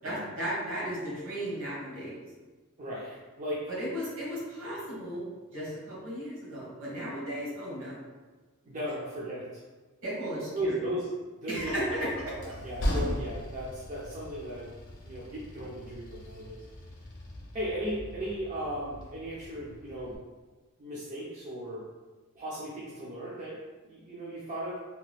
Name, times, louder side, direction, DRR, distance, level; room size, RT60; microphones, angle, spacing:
voice 1, 0.0-2.2 3.7-5.2 5.5-8.0 10.0-10.8 11.5-12.3, equal, 65° right, -5 dB, 1.2 m, -35 dB
voice 2, 2.8-3.7 8.6-9.6 10.3-11.1 11.4-11.8 12.4-14.7 15.0-16.6 17.5-20.2 20.8-21.8 22.4-23.6 23.9-24.8, right 1 dB, 35° right, -7 dB, 0.5 m, -36 dB
Train, 11.6-20.2, equal, 55° left, 0.7 m, -38 dB
2.8 x 2.2 x 3.3 m, 1.3 s
head